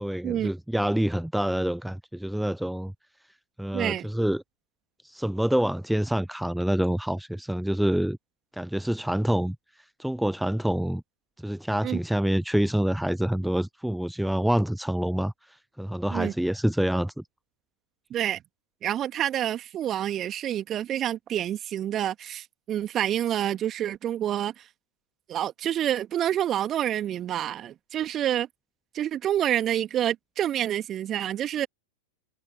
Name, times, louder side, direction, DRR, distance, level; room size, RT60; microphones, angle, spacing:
voice 1, 0.0-2.9 3.6-4.4 5.0-8.2 8.5-11.0 11.4-17.2, equal, ahead, 0.5 m, -27 dB
voice 2, 3.7-4.1 11.8-12.0 16.1-16.3 18.1-18.4 18.8-24.6 25.3-28.5 28.9-31.7, right 11 dB, 30° right, 2.6 m, -28 dB
figure-of-eight pair, 90°, 0 cm